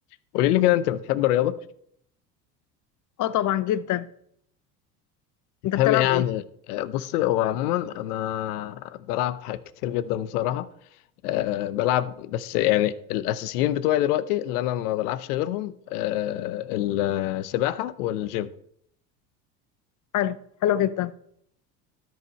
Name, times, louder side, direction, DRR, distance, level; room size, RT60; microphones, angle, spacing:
voice 1, 0.3-1.6 5.8-6.4 6.7-10.7 11.2-18.5, left 13 dB, 75° left, 0.7 m, -25 dB
voice 2, 3.2-4.1 5.6-6.3 20.1-21.1, left 12 dB, 40° left, 0.7 m, -25 dB
13.0 x 4.7 x 4.1 m
hypercardioid pair, 80°, 46 cm